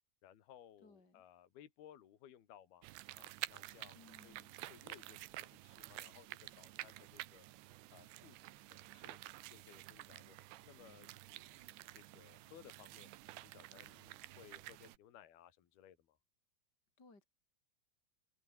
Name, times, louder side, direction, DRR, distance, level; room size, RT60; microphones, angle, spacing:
voice 1, 0.2-2.9 3.1-4.4 4.7-7.5 7.9-9.2 9.5-10.4 10.6-13.1 13.4-16.2, left 10 dB, 70° left, 4.0 m, -61 dB
voice 2, 0.8-1.2 3.9-4.6 17.0-17.2, left 3 dB, 25° left, 5.2 m, -62 dB
sound 1, 2.8-15.0, right 17 dB, 90° right, 3.1 m, -51 dB
omnidirectional pair, 4.7 m